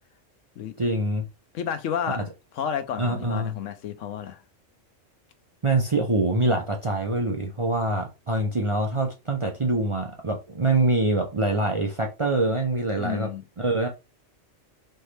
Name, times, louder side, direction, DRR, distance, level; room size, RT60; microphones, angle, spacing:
voice 1, 0.8-1.3 2.1-2.2 3.0-3.5 5.6-13.3 13.6-13.9, right 2 dB, 35° right, 0.5 m, -24 dB
voice 2, 1.5-2.2 2.5-4.4 12.9-13.4, left 8 dB, 80° left, 1.0 m, -31 dB
4.4 x 3.1 x 3.1 m
omnidirectional pair, 1.3 m